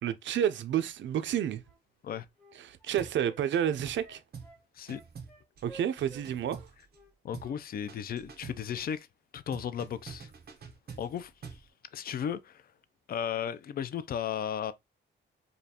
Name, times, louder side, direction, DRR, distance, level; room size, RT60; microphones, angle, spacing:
voice 1, 0.0-1.6 2.5-4.2 5.6-6.6, right 10 dB, 75° right, 0.5 m, -30 dB
Wind instrument woodwind instrument, 1.6-6.3 6.5-7.6 7.8-8.0, right 3 dB, 5° left, 1.1 m, -54 dB
sound 1, 3.0-3.2 3.5-4.1 4.3-4.6 4.9-7.0 7.3-7.6 7.9-8.7 9.5-11.7, right 5 dB, 55° right, 0.9 m, -46 dB
voice 2, 7.2-9.1 9.3-10.3 11.0-11.3 11.9-12.6 13.1-14.7, left 8 dB, 50° left, 0.4 m, -35 dB
5.1 x 2.3 x 2.7 m
wide cardioid pair, 135°, 20 cm